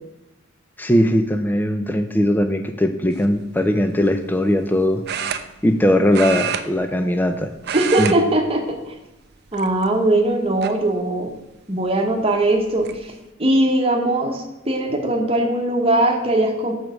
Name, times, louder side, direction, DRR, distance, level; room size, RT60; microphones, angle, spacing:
voice 1, 0.8-5.0 5.6-7.5 8.0-8.1, left 1 dB, 10° left, 7 dB, 0.4 m, -19 dB
sound 1, 3.1-3.4 5.1-5.8 6.1-7.3 7.6-8.2 8.5-8.7 9.5-10.1 10.6-10.7 12.2-12.3 12.6-13.0, right 7 dB, 50° right, 0.5 m, -28 dB
voice 2, 7.7-8.9 9.5-11.3 11.7-13.1 13.4-16.7, right 1 dB, 30° right, 3 dB, 1.1 m, -20 dB
7.2 x 4.6 x 6.3 m, 0.99 s
head